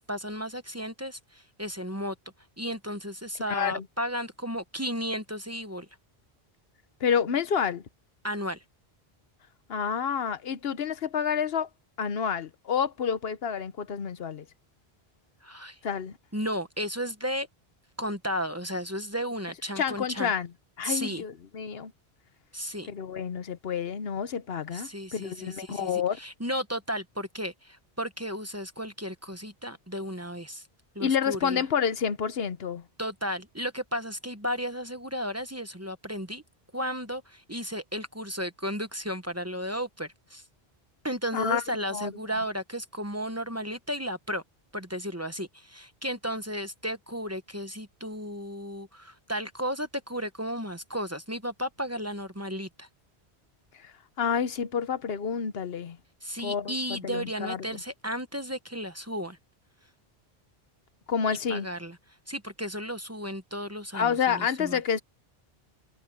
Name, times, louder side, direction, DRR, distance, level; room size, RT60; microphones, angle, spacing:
voice 1, 0.0-2.1 2.6-5.9 8.2-8.6 15.4-15.8 16.3-17.5 18.0-20.3 20.8-21.2 22.5-22.9 24.7-30.6 30.9-31.6 33.0-36.4 36.7-40.4 41.0-44.4 44.7-52.9 56.2-59.4 61.5-62.0 62.3-64.8, equal, 15° right, 1.0 m, -34 dB
voice 2, 3.5-3.8 7.0-7.8 9.7-11.7 12.0-14.4 15.8-16.2 19.8-20.5 20.8-21.9 22.9-26.2 31.0-32.8 41.3-41.6 41.9-42.1 53.8-56.0 56.4-57.7 61.1-61.7 63.9-65.0, left 7 dB, 70° left, 1.1 m, -29 dB
omnidirectional pair, 1.1 m